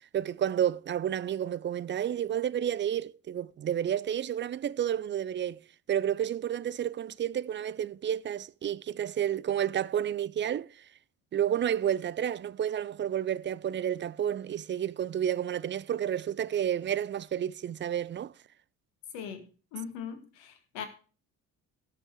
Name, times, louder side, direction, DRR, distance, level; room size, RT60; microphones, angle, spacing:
voice 1, 0.1-5.6 5.9-10.7 11.3-18.3, right 10 dB, 25° right, 0.4 m, -30 dB
voice 2, 19.1-19.5 19.7-20.9, left 7 dB, 70° left, 1.9 m, -40 dB
17.0 x 6.2 x 4.5 m
figure-of-eight pair, 45°, 45 cm